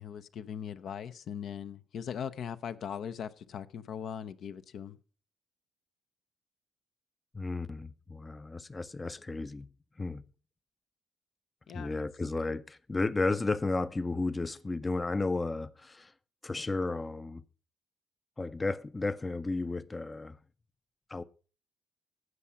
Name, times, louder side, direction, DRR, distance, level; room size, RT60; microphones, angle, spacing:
voice 1, 0.0-5.0 11.7-12.0, left 8 dB, 65° left, 0.6 m, -40 dB
voice 2, 7.3-9.7 10.0-10.2 11.7-16.1 16.4-17.4 18.4-20.4 21.1-21.2, left 3 dB, 20° left, 0.5 m, -33 dB
16.0 x 5.7 x 5.6 m
cardioid pair, 90°, 0 cm